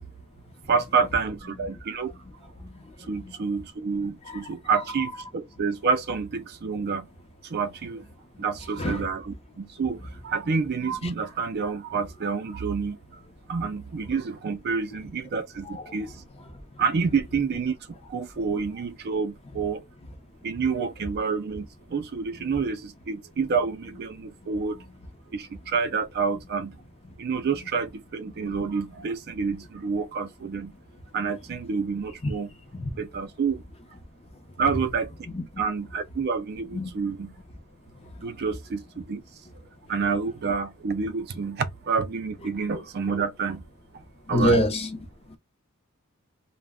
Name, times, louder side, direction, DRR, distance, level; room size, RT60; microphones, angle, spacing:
voice 1, 0.7-2.1 3.1-7.1 7.4-8.1 8.4-13.0 13.5-16.2 16.8-19.8 20.4-24.8 25.3-26.8 27.2-30.7 31.1-32.5 33.0-33.6 34.6-35.1 35.6-37.3 38.2-39.2 39.9-43.7 43.9-44.0 44.3-44.6, right 5 dB, 50° right, 0.4 m, -28 dB
voice 2, 44.3-45.0, equal, 30° left, 0.6 m, -25 dB
2.1 x 2.1 x 3.5 m
head